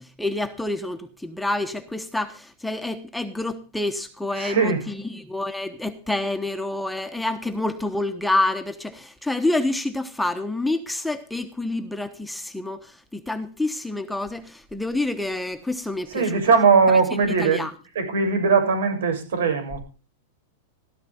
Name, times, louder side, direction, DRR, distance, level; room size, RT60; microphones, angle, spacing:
voice 1, 0.0-16.4 16.9-17.0 17.4-17.7, left 2 dB, ahead, 1.1 m, -28 dB
voice 2, 4.3-4.8 16.1-17.7 17.9-19.8, right 5 dB, 85° right, 7.6 m, -20 dB
16.0 x 13.0 x 3.6 m
supercardioid pair, 155°, 0 cm